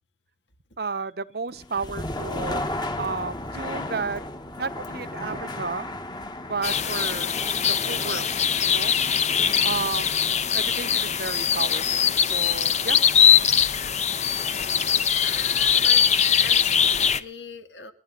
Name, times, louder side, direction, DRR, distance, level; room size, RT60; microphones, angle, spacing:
voice 1, 0.8-2.7 3.0-4.2 4.6-5.9 6.4-7.3 7.7-8.3 8.6-9.1 9.6-10.1 10.5-13.0, right 4 dB, 65° right, 0.9 m, -32 dB
sound 1, 1.5-13.4, left 1 dB, 25° left, 1.5 m, -36 dB
sound 2, 6.6-17.2, left 8 dB, 40° left, 0.9 m, -21 dB
voice 2, 15.2-16.0 16.4-17.9, left 5 dB, 80° left, 2.6 m, -40 dB
29.5 x 11.0 x 4.0 m
head